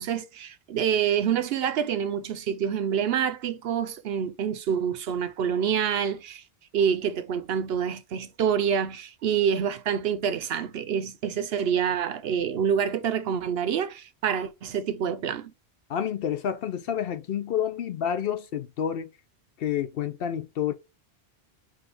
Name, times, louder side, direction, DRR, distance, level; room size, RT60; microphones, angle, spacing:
voice 1, 0.0-6.4 6.7-15.5, right 8 dB, 70° right, 0.8 m, -27 dB
voice 2, 15.9-19.1 19.6-20.7, left 9 dB, 65° left, 0.8 m, -29 dB
4.9 x 2.4 x 4.1 m
omnidirectional pair, 1.1 m